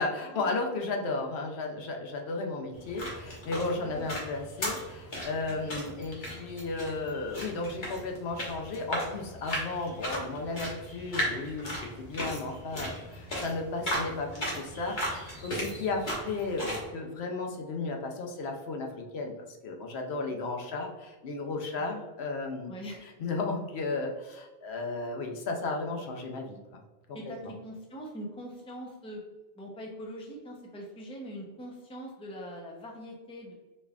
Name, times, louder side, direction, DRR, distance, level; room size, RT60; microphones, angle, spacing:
voice 1, 0.0-19.3 19.6-22.7 23.0-26.8 27.1-27.5, left 3 dB, 75° left, 2 dB, 0.9 m, -34 dB
sound 1, 2.7-16.9, equal, 50° left, 1.3 m, -37 dB
voice 2, 3.8-4.1 5.5-5.6 21.8-21.9 22.7-23.0 27.1-29.2 29.6-33.5, equal, 5° left, -1 dB, 0.5 m, -42 dB
4.3 x 3.4 x 2.4 m, 1.2 s
omnidirectional pair, 1.1 m